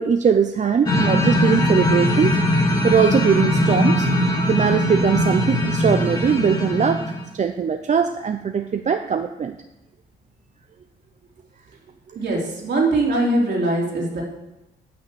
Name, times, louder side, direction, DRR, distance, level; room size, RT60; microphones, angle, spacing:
voice 1, 0.0-2.4 2.8-4.1 4.5-7.0 7.3-9.6, right 7 dB, 35° right, 8 dB, 0.6 m, -20 dB
sound 1, 0.9-7.2, left 1 dB, 20° left, 2.4 m, -20 dB
voice 2, 12.2-14.2, right 2 dB, 60° right, -2 dB, 3.4 m, -21 dB
9.0 x 5.5 x 7.9 m, 0.98 s
cardioid pair, 90°, 20 cm